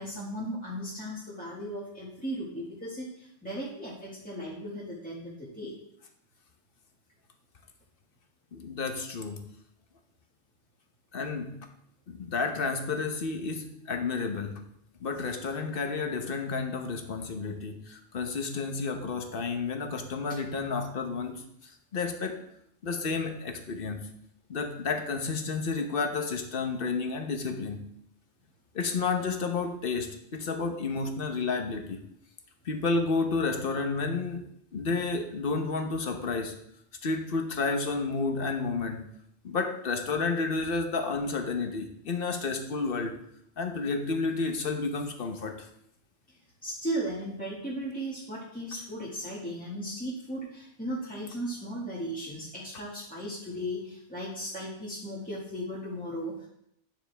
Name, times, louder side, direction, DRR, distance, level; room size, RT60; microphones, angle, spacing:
voice 1, 0.0-5.7 46.3-46.4 46.6-56.5, equal, 5° left, -7 dB, 1.6 m, -36 dB
voice 2, 8.5-9.4 11.1-11.6 12.1-14.6 15.0-22.4 22.8-24.0 24.5-27.8 28.7-32.0 32.6-34.4 34.7-36.5 37.0-39.0 39.4-43.2 43.6-45.7, left 4 dB, 50° left, 5 dB, 1.1 m, -31 dB
9.4 x 7.0 x 3.4 m, 0.75 s
omnidirectional pair, 1.3 m